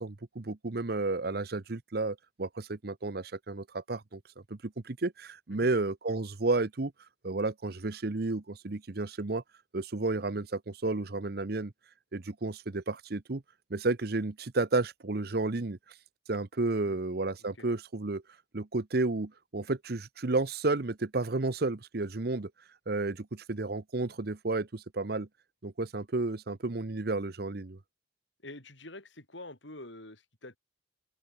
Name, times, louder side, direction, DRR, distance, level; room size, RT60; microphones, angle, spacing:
voice 1, 0.0-4.2 4.5-6.9 7.2-9.4 9.7-11.7 12.1-13.4 13.7-15.8 16.3-18.2 18.5-22.5 22.9-25.3 25.6-27.8, right 3 dB, 55° right, 0.9 m, -32 dB
voice 2, 28.4-30.6, left 2 dB, 85° left, 7.9 m, -46 dB
open air
head